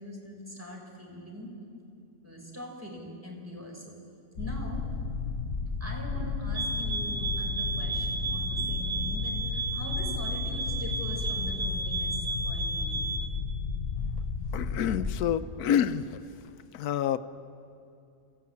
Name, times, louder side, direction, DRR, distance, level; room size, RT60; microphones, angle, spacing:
voice 1, 0.0-1.6 2.2-4.0 4.4-4.9 5.8-13.1, equal, 10° right, -1 dB, 3.9 m, -42 dB
sound 1, 4.4-15.2, left 5 dB, 50° left, 1.1 m, -33 dB
sound 2, 6.5-13.3, right 4 dB, 80° right, 2.0 m, -33 dB
voice 2, 14.5-16.0 16.7-17.2, left 9 dB, 80° left, 12 dB, 1.2 m, -27 dB
22.5 x 16.0 x 8.5 m, 2.6 s
omnidirectional pair, 1.6 m